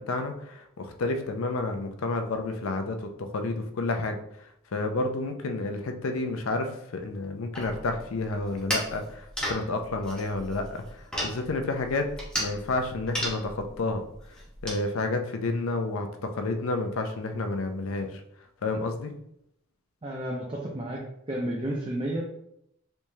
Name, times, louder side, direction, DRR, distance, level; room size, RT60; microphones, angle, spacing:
voice 1, 0.0-4.2 4.7-12.1 12.4-14.0 14.6-18.2 18.6-19.1, left 2 dB, 70° left, 6 dB, 0.5 m, -30 dB
sound 1, 7.5-14.8, equal, 5° left, 0.8 m, -35 dB
voice 2, 20.0-21.0 21.3-22.2, right 1 dB, 25° right, -1 dB, 0.4 m, -31 dB
3.4 x 3.0 x 2.7 m, 0.75 s
head